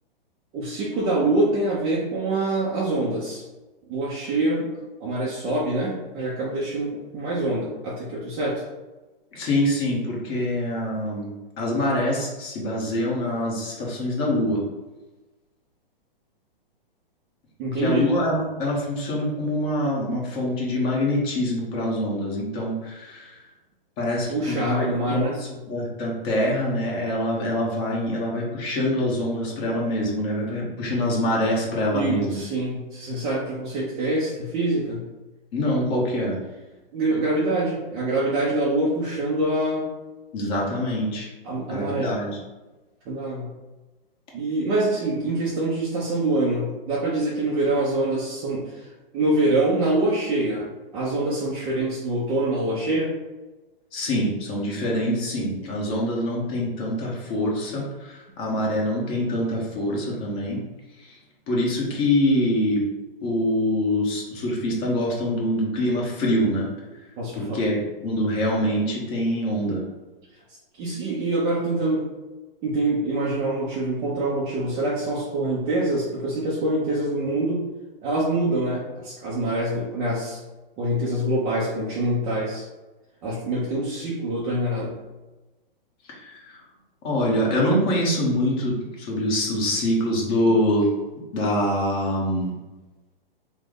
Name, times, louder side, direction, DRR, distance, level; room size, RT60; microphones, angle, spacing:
voice 1, 0.5-3.4 3.9-4.7 5.0-8.6 17.6-18.1 24.3-25.4 31.9-35.0 36.9-39.9 41.4-42.2 43.1-43.5 44.3-50.7 50.9-53.1 67.2-67.6 70.8-72.1 72.6-77.6 78.0-80.4 80.8-82.7 83.2-85.0, right 2 dB, 15° right, -6 dB, 0.3 m, -25 dB
voice 2, 9.3-11.3 11.6-14.6 17.8-23.3 24.0-32.4 35.5-36.4 40.3-41.3 41.7-42.4 53.9-60.6 61.5-62.8 63.2-66.7 67.3-69.8 86.2-86.5 87.0-90.9 91.3-92.6, left 1 dB, 30° left, -3 dB, 1.0 m, -25 dB
3.2 x 2.0 x 3.5 m, 1.1 s
hypercardioid pair, 135°, 29 cm